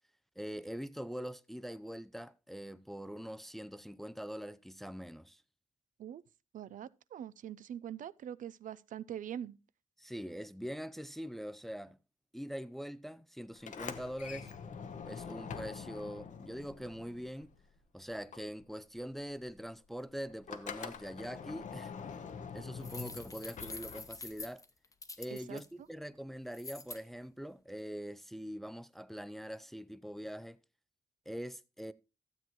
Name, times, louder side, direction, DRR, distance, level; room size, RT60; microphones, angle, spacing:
voice 1, 0.4-5.4 10.0-12.0 12.3-14.5 15.0-17.5 17.9-21.9 22.5-24.6 25.2-30.6 31.3-31.9, equal, ahead, 0.4 m, -43 dB
voice 2, 6.5-9.6 25.3-25.6, right 10 dB, 75° right, 0.4 m, -43 dB
Sliding door, 13.5-17.8 18.1-24.5, left 6 dB, 70° left, 0.8 m, -45 dB
sound 1, 22.8-25.6 26.5-27.0, left 3 dB, 25° left, 0.9 m, -46 dB
12.5 x 7.7 x 2.9 m
wide cardioid pair, 110°, 13 cm